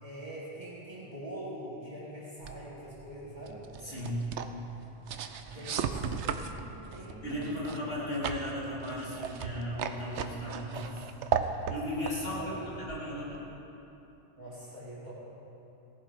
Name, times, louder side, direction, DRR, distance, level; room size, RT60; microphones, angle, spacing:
voice 1, 0.0-4.0 5.5-8.0 12.4-12.8 14.4-15.1, right 1 dB, 20° right, -10 dB, 4.0 m, -44 dB
sound 1, 2.4-13.5, right 7 dB, 70° right, 1.0 m, -37 dB
voice 2, 3.8-4.3 5.5-6.1 7.2-10.9 11.3-11.4 11.7-13.4, equal, 50° left, -8 dB, 3.6 m, -36 dB
17.5 x 11.0 x 5.1 m, 2.9 s
omnidirectional pair, 1.3 m